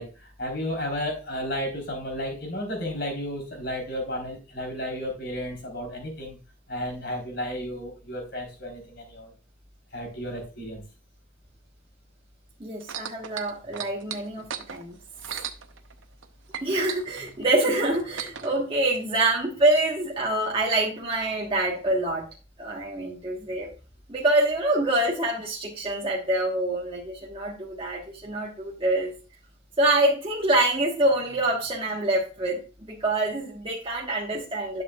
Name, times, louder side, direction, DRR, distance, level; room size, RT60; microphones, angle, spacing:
voice 1, 0.0-6.4 6.7-9.3 9.9-10.8, left 1 dB, 55° left, 2 dB, 3.7 m, -33 dB
voice 2, 12.6-14.9 16.6-22.2 22.6-23.7 24.1-29.1 29.8-34.8, right 1 dB, 25° right, -3 dB, 1.3 m, -25 dB
sound 1, 12.8-16.3 16.5-18.5 19.3-19.4, right 8 dB, 85° right, 0.7 m, -37 dB
11.0 x 6.6 x 2.3 m, 0.33 s
head